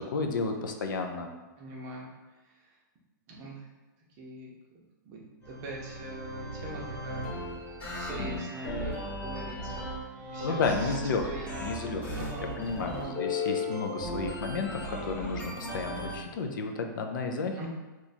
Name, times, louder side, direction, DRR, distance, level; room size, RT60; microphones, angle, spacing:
voice 1, 0.1-1.3 8.2-8.5 10.4-11.3 11.6-12.1 12.6-17.7, left 4 dB, 70° left, 4 dB, 0.5 m, -32 dB
voice 2, 1.6-2.1 2.5-2.7 3.3-3.7 4.2-4.5 5.0-7.3 8.0-8.9 9.2-9.8 10.3-11.0 11.2-13.2 17.6-17.7, right 1 dB, 25° right, -2 dB, 0.7 m, -42 dB
sound 1, 5.4-16.2, left 1 dB, 15° left, 0.8 m, -36 dB
3.0 x 2.4 x 4.1 m, 1.1 s
hypercardioid pair, 165°, 11 cm